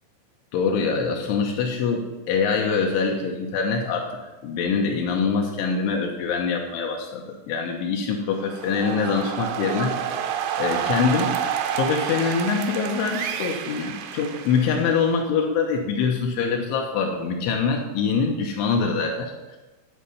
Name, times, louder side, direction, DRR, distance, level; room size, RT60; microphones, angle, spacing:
voice 1, 0.5-4.1 4.4-10.3 10.6-11.4 11.7-19.6, left 5 dB, 80° left, 2 dB, 3.0 m, -24 dB
sound 1, 8.3-15.2, right 9 dB, 80° right, 2.6 m, -29 dB
9.9 x 4.3 x 7.0 m, 1.1 s
omnidirectional pair, 5.8 m